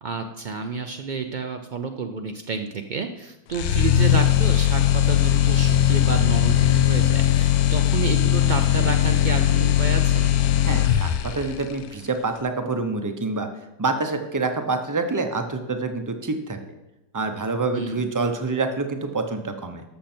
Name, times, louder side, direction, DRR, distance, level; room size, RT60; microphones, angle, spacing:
voice 1, 0.0-10.2 17.7-18.0, right 4 dB, 80° right, 5 dB, 0.4 m, -30 dB
sound 1, 3.5-11.5, left 10 dB, 80° left, 1.1 m, -19 dB
voice 2, 10.7-13.5 13.8-16.6 17.1-19.8, right 3 dB, 20° right, 6 dB, 0.5 m, -26 dB
13.5 x 6.5 x 4.4 m, 0.97 s
omnidirectional pair, 1.6 m